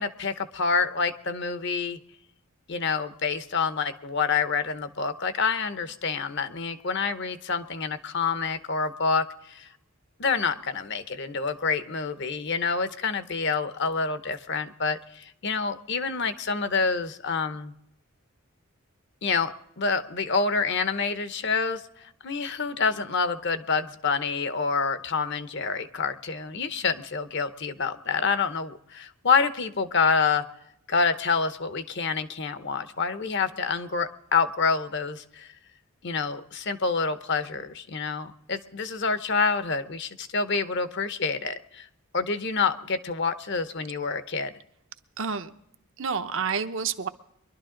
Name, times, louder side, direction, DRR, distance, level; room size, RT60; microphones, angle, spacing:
voice 1, 0.0-2.0 2.7-9.7 10.2-17.7 19.2-30.4 30.9-35.5 36.0-41.9 42.1-44.5, left 5 dB, 55° left, 11 dB, 0.8 m, -27 dB
voice 2, 45.2-45.5 46.0-47.1, right 6 dB, 60° right, 9 dB, 0.7 m, -29 dB
23.5 x 11.5 x 3.8 m, 0.79 s
head